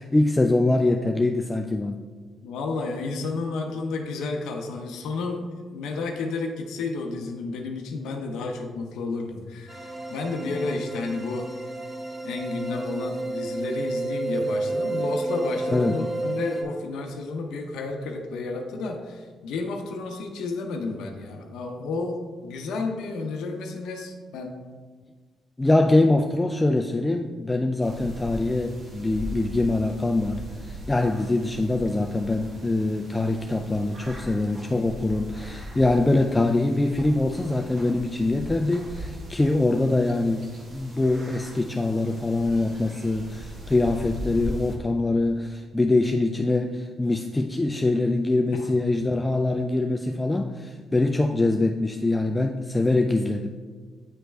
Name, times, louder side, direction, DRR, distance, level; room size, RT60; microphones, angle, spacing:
voice 1, 0.0-2.0 15.7-16.0 25.6-53.5, left 2 dB, 15° left, 4 dB, 0.3 m, -24 dB
voice 2, 2.4-11.5 12.2-24.6 48.5-48.7, left 3 dB, 85° left, 2 dB, 0.6 m, -31 dB
sound 1, 9.7-16.6, right 2 dB, 20° right, 1.2 m, -31 dB
sound 2, 27.8-44.7, equal, 50° right, 1.4 m, -39 dB
9.1 x 3.2 x 3.3 m, 1.5 s
cardioid pair, 90°, 0 cm